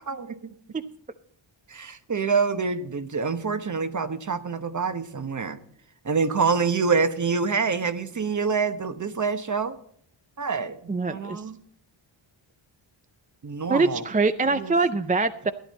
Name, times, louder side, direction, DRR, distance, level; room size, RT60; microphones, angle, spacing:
voice 1, 0.1-0.5 1.7-5.6 6.0-9.8 10.4-11.6 13.4-14.0 14.5-14.7, right 5 dB, 40° right, 10 dB, 1.0 m, -26 dB
voice 2, 10.9-11.4 13.7-15.5, right 3 dB, 20° right, 11 dB, 0.4 m, -23 dB
14.5 x 10.0 x 4.1 m, 0.65 s
wide cardioid pair, 100°, 48 cm